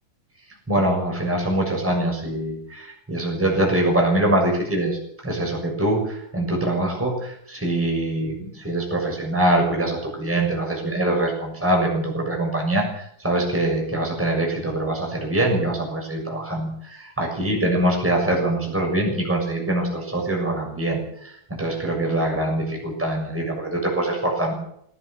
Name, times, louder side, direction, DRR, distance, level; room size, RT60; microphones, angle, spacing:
voice 1, 0.7-24.5, right 1 dB, 5° right, 0 dB, 6.8 m, -23 dB
21.0 x 16.5 x 7.5 m, 0.70 s
omnidirectional pair, 3.7 m